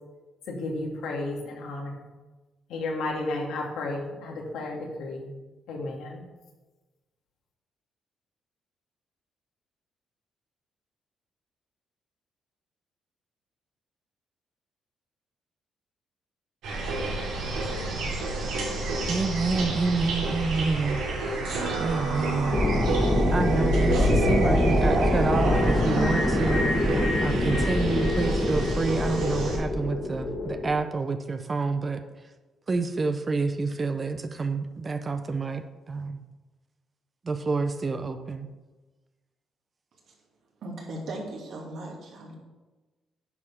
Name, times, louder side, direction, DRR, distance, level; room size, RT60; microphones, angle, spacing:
voice 1, 0.5-2.0 2.7-5.3 5.7-6.2, left 2 dB, 85° left, 0 dB, 2.0 m, -33 dB
sound 1, 16.6-29.6, right 2 dB, 85° right, 2.9 m, -29 dB
voice 2, 19.1-21.0 21.8-22.6 23.3-26.6 27.2-32.0 32.7-36.2 37.2-38.5, right 3 dB, 30° right, 8 dB, 0.6 m, -28 dB
sound 2, 22.5-30.8, left 1 dB, 20° left, 1.6 m, -25 dB
voice 3, 40.6-42.3, right 1 dB, 65° right, -1 dB, 2.6 m, -37 dB
9.6 x 4.7 x 5.7 m, 1.2 s
cardioid pair, 90°, 0 cm